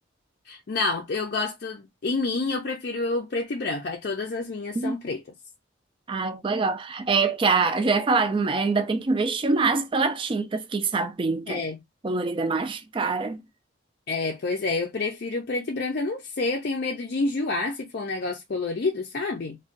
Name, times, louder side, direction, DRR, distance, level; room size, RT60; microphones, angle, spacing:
voice 1, 0.5-5.2 11.5-11.8 14.1-19.6, left 3 dB, 50° left, 0.4 m, -28 dB
voice 2, 6.1-11.6 12.0-13.4, right 4 dB, 25° right, 0.3 m, -24 dB
2.5 x 2.2 x 3.7 m
head